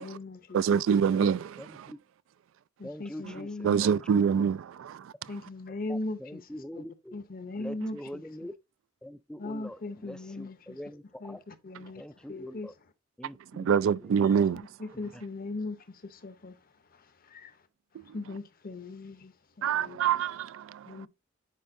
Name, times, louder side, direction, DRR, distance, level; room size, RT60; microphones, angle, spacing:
voice 1, 0.0-0.6 1.2-1.3 2.8-3.8 5.3-6.8 7.1-8.2 9.4-10.8 11.2-12.0 12.3-12.7 14.2-14.3 14.8-16.6 17.3-17.5 18.1-20.0 20.9-21.1, left 2 dB, 45° left, 0.7 m, -39 dB
voice 2, 0.5-1.5 3.2-3.3 3.6-4.9 7.8-7.9 13.6-14.6 19.6-20.5, right 7 dB, 80° right, 0.3 m, -25 dB
voice 3, 1.6-2.0 2.8-3.5 3.8-4.2 5.9-7.2 7.6-8.5 9.0-11.4 12.0-12.7 13.2-13.7, left 1 dB, 5° left, 0.3 m, -43 dB
10.0 x 4.3 x 2.6 m
head